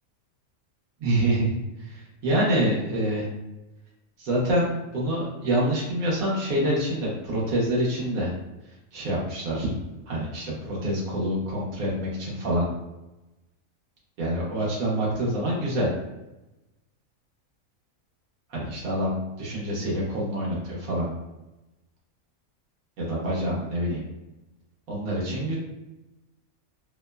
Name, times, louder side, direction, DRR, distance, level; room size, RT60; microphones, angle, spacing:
voice 1, 1.0-3.3 4.2-8.3 8.9-9.7 10.1-12.6 14.2-15.9 18.5-21.1 23.0-24.0 24.9-25.6, right 1 dB, 80° right, -5 dB, 1.3 m, -26 dB
2.9 x 2.0 x 2.2 m, 1.0 s
omnidirectional pair, 1.4 m